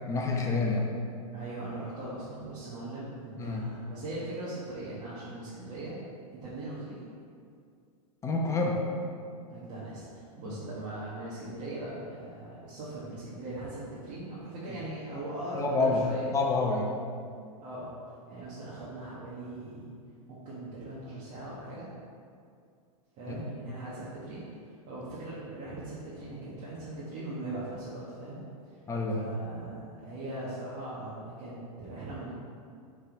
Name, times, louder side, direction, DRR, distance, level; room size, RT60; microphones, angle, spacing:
voice 1, 0.1-0.9 3.4-3.6 8.2-8.8 10.5-10.6 14.7-14.8 15.5-16.1 16.3-16.9 23.3-23.4 28.9-29.3, left 3 dB, 15° left, -1 dB, 0.9 m, -28 dB
voice 2, 1.3-6.0 6.3-7.0 9.5-16.3 17.6-17.9 18.3-19.9 20.3-21.9 23.2-24.4 24.9-28.4 28.7-28.8 29.1-32.3, right 2 dB, 40° right, -9 dB, 1.5 m, -40 dB
6.5 x 3.8 x 4.7 m, 2.3 s
hypercardioid pair, 125°, 19 cm